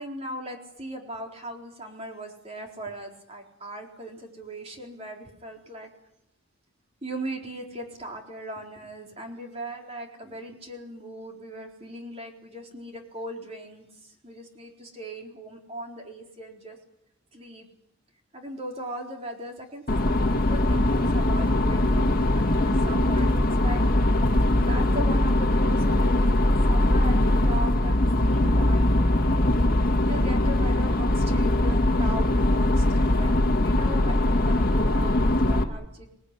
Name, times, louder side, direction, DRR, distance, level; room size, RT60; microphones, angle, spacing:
voice 1, 0.0-5.9 7.0-16.8 17.3-17.7 18.3-23.8 24.6-28.9 30.0-33.3 33.6-36.2, right 1 dB, 30° right, 1 dB, 4.0 m, -39 dB
sound 1, 19.9-35.6, left 1 dB, 40° left, 1.8 m, -21 dB
26.5 x 19.0 x 9.8 m, 0.82 s
head